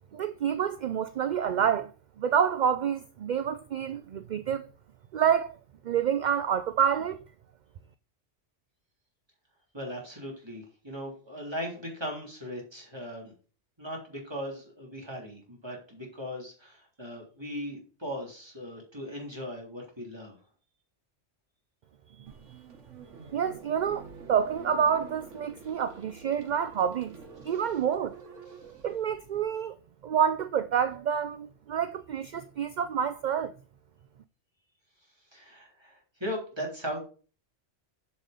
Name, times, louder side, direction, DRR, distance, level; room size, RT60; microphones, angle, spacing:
voice 1, 0.1-4.7 5.1-5.6 5.8-7.2 22.1-22.6 23.3-27.2 27.4-28.2 28.8-29.8 30.0-33.5, right 8 dB, 60° right, 0.5 m, -28 dB
voice 2, 9.7-13.3 13.8-20.4 25.7-25.8 27.5-27.6 35.3-37.0, equal, 20° right, 3.5 m, -38 dB
sound 1, 22.3-29.4, right 5 dB, 85° right, 1.7 m, -49 dB
7.3 x 6.5 x 5.3 m
omnidirectional pair, 1.2 m